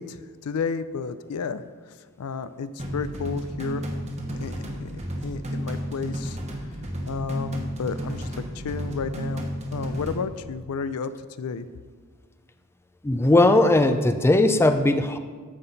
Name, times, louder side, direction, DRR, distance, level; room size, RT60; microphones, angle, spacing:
voice 1, 0.0-1.6 2.2-3.8 4.4-6.4 7.0-8.3 8.5-11.1 11.4-11.7, left 5 dB, 80° left, 13 dB, 0.5 m, -32 dB
sound 1, 2.8-10.2, equal, 30° right, 1.1 m, -32 dB
voice 2, 13.0-15.2, left 2 dB, 10° left, 8 dB, 0.4 m, -18 dB
9.7 x 7.6 x 4.0 m, 1.5 s
head